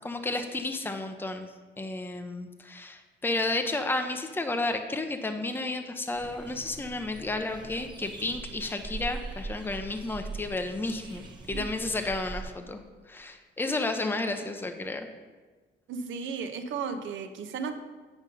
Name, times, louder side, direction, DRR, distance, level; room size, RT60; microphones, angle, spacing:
voice 1, 0.0-1.5 1.8-12.8 13.1-15.1, left 2 dB, 10° left, 6 dB, 0.7 m, -32 dB
sound 1, 6.1-12.4, right 3 dB, 20° right, 1.2 m, -41 dB
voice 2, 15.9-17.7, right 5 dB, 75° right, 7 dB, 0.9 m, -34 dB
9.1 x 5.3 x 5.4 m, 1.3 s
cardioid pair, 90°, 20 cm